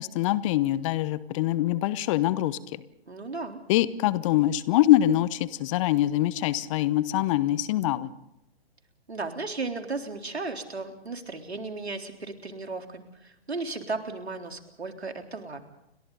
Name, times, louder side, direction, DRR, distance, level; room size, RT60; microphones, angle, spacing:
voice 1, 0.0-2.6 3.7-8.1, left 14 dB, 30° left, 17 dB, 1.0 m, -24 dB
voice 2, 3.1-3.6 9.1-15.6, right 3 dB, 80° right, 4 dB, 3.8 m, -35 dB
30.0 x 25.0 x 4.0 m, 0.82 s
figure-of-eight pair, 125°, 32 cm